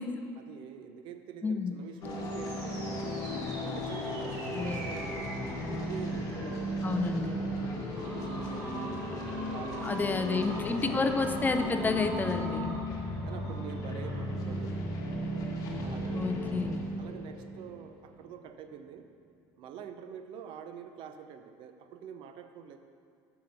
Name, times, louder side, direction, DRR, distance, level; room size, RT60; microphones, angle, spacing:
voice 1, 0.4-3.3 3.6-5.4 5.8-9.0 9.5-11.0 12.4-12.9 13.2-14.8 15.8-16.3 17.0-19.1 19.6-22.8, right 7 dB, 60° right, 8 dB, 0.6 m, -46 dB
voice 2, 1.4-1.7 4.5-4.8 6.8-7.4 9.8-12.7 16.1-16.9, left 4 dB, 20° left, 7 dB, 0.5 m, -30 dB
sound 1, 1.8-14.2, right 2 dB, 75° right, 2.4 m, -45 dB
sound 2, 2.0-18.3, equal, 40° left, 1.6 m, -35 dB
7.4 x 6.0 x 5.8 m, 2.3 s
supercardioid pair, 110°, 10 cm